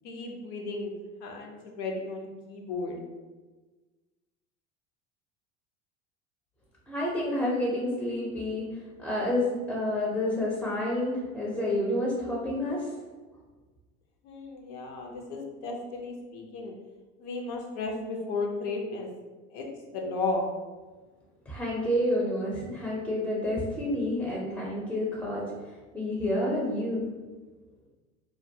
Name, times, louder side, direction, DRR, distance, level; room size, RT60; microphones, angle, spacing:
voice 1, 0.0-3.0 14.2-16.7 17.2-19.1 19.5-19.6 19.9-20.5, left 3 dB, 75° left, 1 dB, 0.6 m, -34 dB
voice 2, 6.9-8.7 9.0-12.9 21.5-27.1, left 1 dB, 5° left, -4 dB, 0.4 m, -29 dB
2.2 x 2.1 x 2.6 m, 1.3 s
supercardioid pair, 95°, 36 cm